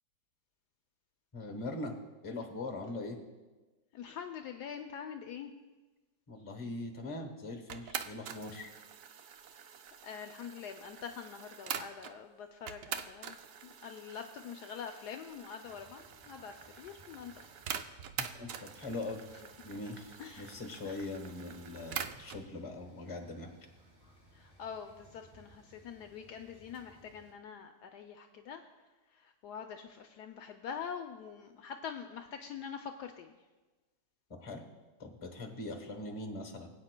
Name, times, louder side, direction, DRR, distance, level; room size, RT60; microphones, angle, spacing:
voice 1, 1.3-2.0 2.2-3.2 6.3-8.7 18.2-19.2 19.6-23.5 34.3-34.6 35.0-36.7, left 2 dB, 25° left, 4 dB, 0.9 m, -41 dB
voice 2, 3.9-5.5 9.6-9.8 10.0-17.5 20.2-20.5 20.8-21.0 24.3-28.7 29.1-33.3, left 7 dB, 75° left, 5 dB, 1.0 m, -45 dB
sound 1, 7.7-12.2 12.7-22.5, right 8 dB, 75° right, 0.7 m, -45 dB
sound 2, 15.6-27.3, equal, 15° right, 1.4 m, -62 dB
20.5 x 8.7 x 2.2 m, 1.2 s
omnidirectional pair, 2.0 m